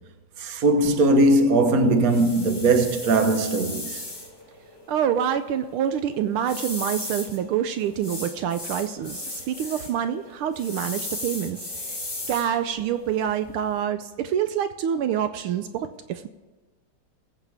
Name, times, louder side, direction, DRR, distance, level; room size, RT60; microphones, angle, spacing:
voice 1, 0.4-4.0, right 2 dB, 50° right, 1.4 m, -20 dB
sound 1, 0.8-13.8, left 2 dB, 10° left, 1.6 m, -37 dB
voice 2, 4.9-12.0 12.3-16.3, right 9 dB, 80° right, 1.5 m, -26 dB
20.5 x 8.1 x 3.5 m
omnidirectional pair, 2.4 m